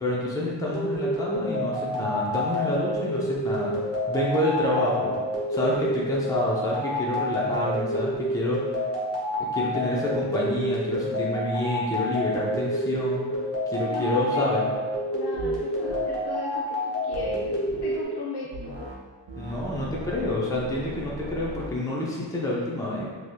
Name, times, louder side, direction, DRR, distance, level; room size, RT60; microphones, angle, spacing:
voice 1, 0.0-3.7 4.1-5.2 5.5-8.7 9.4-14.7 19.4-23.1, left 1 dB, 10° left, -4 dB, 0.6 m, -28 dB
sound 1, 0.7-18.1, equal, 30° left, 0.9 m, -29 dB
voice 2, 13.9-14.8 15.1-18.9, left 3 dB, 60° left, -4 dB, 0.5 m, -36 dB
sound 2, 15.4-15.6 15.9-16.1 17.1-17.9 18.5-19.0 19.3-21.7, right 1 dB, 75° right, 0.7 m, -39 dB
3.2 x 2.8 x 2.2 m, 1.5 s
cardioid pair, 40°, 45 cm